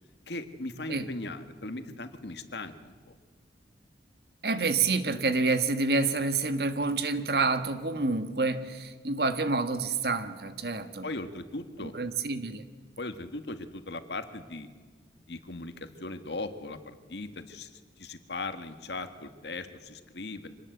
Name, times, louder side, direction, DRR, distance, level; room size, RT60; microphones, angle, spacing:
voice 1, 0.3-3.1 11.0-11.9 13.0-14.7 15.3-20.5, left 2 dB, 70° left, 9 dB, 1.7 m, -38 dB
voice 2, 4.4-11.1 11.8-12.6, right 3 dB, 60° right, 9 dB, 1.6 m, -28 dB
25.5 x 19.5 x 8.1 m, 1.5 s
head